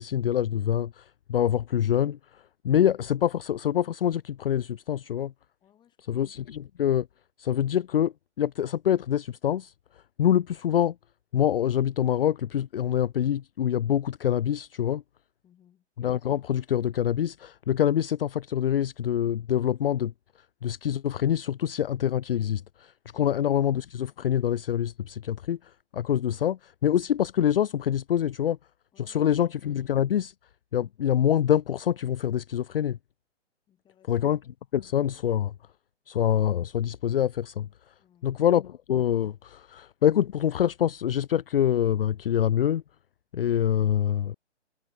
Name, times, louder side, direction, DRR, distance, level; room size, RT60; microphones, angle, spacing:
voice 1, 0.0-2.2 2.6-5.3 6.1-7.1 7.4-9.7 10.2-10.9 11.3-15.0 16.0-20.1 20.6-28.6 29.0-30.3 30.7-33.0 34.1-34.4 34.7-35.5 36.1-37.7 38.2-42.8 43.3-44.3, left 10 dB, 55° left, 0.5 m, -25 dB
voice 2, 5.6-6.2 15.4-15.9 28.9-29.4 33.7-34.3 38.0-38.5, left 10 dB, 10° left, 6.1 m, -63 dB
hypercardioid pair, 155°, 36 cm